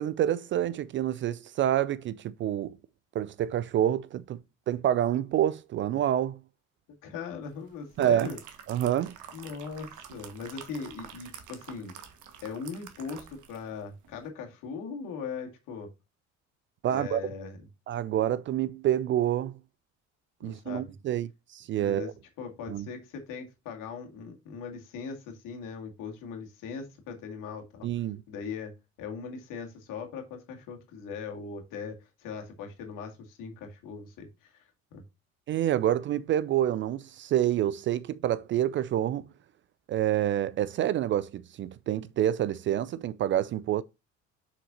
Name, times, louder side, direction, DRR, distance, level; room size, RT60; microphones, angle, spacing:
voice 1, 0.0-2.8 3.1-4.4 4.7-6.4 8.0-8.3 8.7-9.1 16.8-17.2 17.9-19.5 20.4-22.1 22.7-22.8 27.8-28.2 35.5-39.3 39.9-43.8, right 11 dB, 30° right, 0.4 m, -27 dB
voice 2, 7.0-8.4 9.3-11.9 12.4-15.9 16.8-17.6 20.4-20.9 21.8-22.1 22.4-28.7 29.0-34.6 34.9-35.0, left 5 dB, 55° left, 2.2 m, -40 dB
sound 1, 7.7-13.7 14.0-14.2, right 8 dB, 50° right, 1.5 m, -48 dB
6.8 x 5.9 x 2.7 m
figure-of-eight pair, 55°, 39 cm